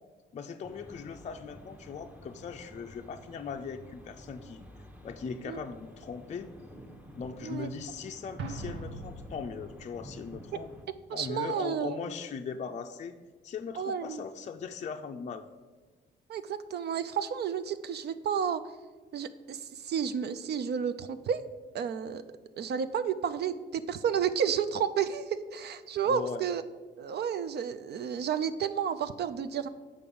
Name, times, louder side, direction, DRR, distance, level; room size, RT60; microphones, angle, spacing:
voice 1, 0.3-4.7 5.0-6.5 7.1-10.7 11.1-13.2 13.4-15.5 26.0-26.4, left 5 dB, 35° left, 5 dB, 0.4 m, -39 dB
sound 1, 0.6-10.9, equal, 5° right, 0.8 m, -51 dB
Explosion, 8.4-10.0, right 2 dB, 75° right, 1.2 m, -41 dB
voice 2, 11.1-12.0 13.8-14.2 16.3-18.6 19.1-21.4 21.7-22.2 22.6-26.6 27.0-29.7, right 7 dB, 55° right, 11 dB, 0.4 m, -31 dB
6.8 x 5.1 x 5.4 m, 1.4 s
cardioid pair, 90°, 20 cm